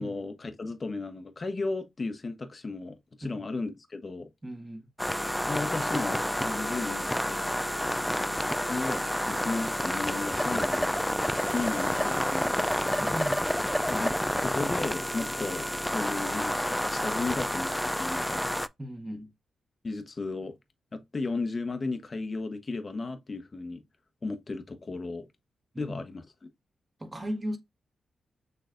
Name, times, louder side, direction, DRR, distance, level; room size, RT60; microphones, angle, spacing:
voice 1, 0.0-4.3 5.5-7.5 8.5-10.9 11.5-12.7 13.9-18.5 19.8-20.5 20.9-23.8 24.2-25.3 25.8-26.2, left 3 dB, 40° left, 0.9 m, -35 dB
voice 2, 4.4-4.9 7.8-8.2 13.0-13.4 18.8-19.3 25.7-26.0 27.0-27.6, equal, 25° right, 1.5 m, -37 dB
sound 1, 5.0-18.7, equal, 5° left, 0.3 m, -29 dB
6.7 x 3.2 x 2.5 m
supercardioid pair, 45°, 0 cm